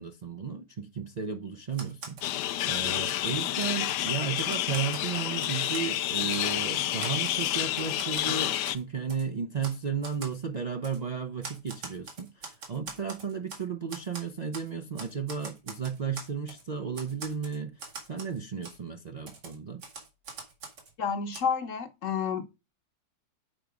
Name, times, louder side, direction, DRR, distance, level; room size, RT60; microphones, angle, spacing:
voice 1, 0.0-19.8, right 6 dB, 70° right, 0.4 m, -34 dB
Typewriter, 1.7-2.3 2.7-4.0 4.4-5.9 6.3-6.6 7.0-8.3 8.6-8.8 9.1-9.2 9.6-9.8 10.0-10.4 10.8-11.0 11.4-13.6 13.9-14.7 15.0-16.6 16.9-18.4 18.6-18.8 19.3-20.9 21.3-21.4, right 4 dB, 85° right, 2.7 m, -43 dB
sound 1, 2.2-8.8, left 13 dB, 85° left, 1.2 m, -29 dB
voice 2, 21.0-22.4, left 6 dB, 55° left, 1.1 m, -30 dB
7.7 x 4.8 x 5.1 m
omnidirectional pair, 1.8 m